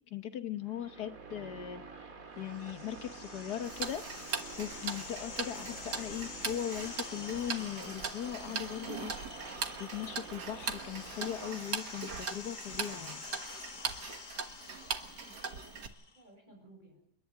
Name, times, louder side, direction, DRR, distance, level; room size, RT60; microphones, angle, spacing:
voice 1, 0.1-1.9 2.4-4.0 4.6-9.1 9.8-13.2, left 10 dB, 75° left, 9 dB, 1.6 m, -39 dB
sound 1, 0.6-12.1, right 4 dB, 55° right, 2.3 m, -49 dB
sound 2, 2.4-16.2, left 4 dB, 35° left, 1.0 m, -48 dB
Tick-tock, 3.6-15.9, right 6 dB, 85° right, 2.1 m, -40 dB
voice 2, 14.7-17.0, right 1 dB, 25° right, 2 dB, 7.6 m, -60 dB
29.5 x 11.0 x 9.2 m, 0.74 s
omnidirectional pair, 1.7 m